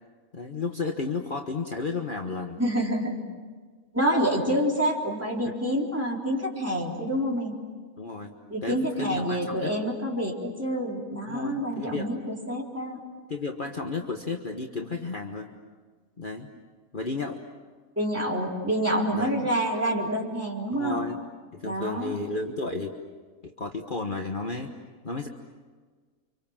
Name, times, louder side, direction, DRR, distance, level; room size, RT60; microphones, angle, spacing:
voice 1, 0.3-2.6 5.4-5.5 8.0-8.3 8.6-9.8 11.3-12.1 13.3-15.5 16.2-16.5 16.9-17.4 19.1-19.4 20.7-21.2 21.5-22.9 23.4-24.7 25.0-25.3, left 3 dB, 40° left, 3 dB, 1.5 m, -33 dB
voice 2, 2.6-3.2 3.9-7.6 8.5-13.0 18.0-21.0 21.6-22.1, equal, 10° right, -2 dB, 3.9 m, -27 dB
30.0 x 26.0 x 7.4 m, 1.5 s
omnidirectional pair, 1.4 m